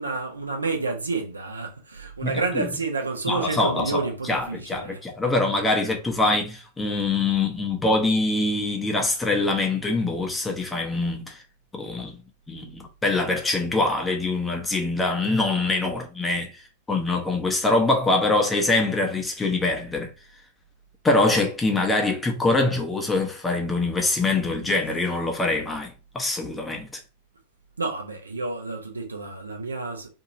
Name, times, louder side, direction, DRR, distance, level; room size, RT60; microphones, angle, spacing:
voice 1, 0.0-5.3 27.8-30.1, right 3 dB, 80° right, 0.6 m, -30 dB
voice 2, 3.3-3.9 4.3-11.4 11.8-12.2 12.5-16.5 16.9-20.1 21.0-26.9, left 2 dB, 10° left, 0.8 m, -24 dB
2.8 x 2.7 x 2.5 m
figure-of-eight pair, 90°, 0 cm